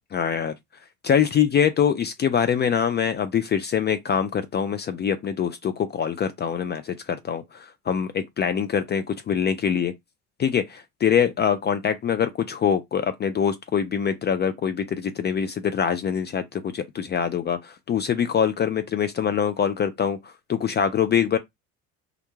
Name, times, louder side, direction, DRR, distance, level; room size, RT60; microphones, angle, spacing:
voice 1, 0.1-0.5 1.0-9.9 10.4-21.4, left 8 dB, 30° left, 0.4 m, -24 dB
2.5 x 2.1 x 3.0 m
hypercardioid pair, 70°, 38 cm